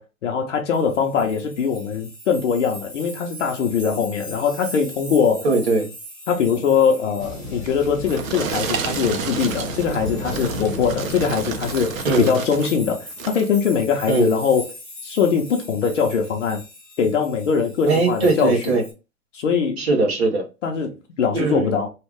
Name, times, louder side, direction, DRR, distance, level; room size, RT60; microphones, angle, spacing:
voice 1, 0.0-5.5 6.3-14.6 15.0-16.6 17.0-18.7 19.3-19.8 20.6-21.9, left 6 dB, 55° left, 0.8 m, -22 dB
sound 1, 0.7-18.9, left 1 dB, ahead, 0.8 m, -41 dB
voice 2, 5.4-5.9 12.0-12.3 14.1-14.3 17.9-18.8 19.8-20.4 21.3-21.7, right 3 dB, 45° right, 1.1 m, -20 dB
sound 2, 7.2-12.2, left 1 dB, 15° right, 0.5 m, -33 dB
sound 3, 7.7-12.8 13.1-13.5 14.1-14.3, right 7 dB, 65° right, 0.7 m, -30 dB
3.2 x 2.4 x 3.4 m
hypercardioid pair, 175°, 44 cm